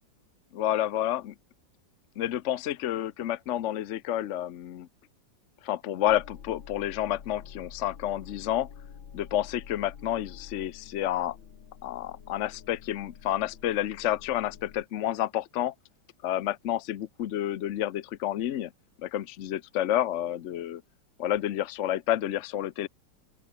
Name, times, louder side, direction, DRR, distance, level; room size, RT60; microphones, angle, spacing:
voice 1, 0.5-1.3 2.2-4.9 5.6-8.7 9.1-11.4 11.8-15.7 16.2-18.7 19.0-20.8 21.2-22.9, left 12 dB, 70° left, 0.7 m, -29 dB
sound 1, 6.1-14.8, left 7 dB, 90° left, 2.5 m, -48 dB
open air
omnidirectional pair, 2.1 m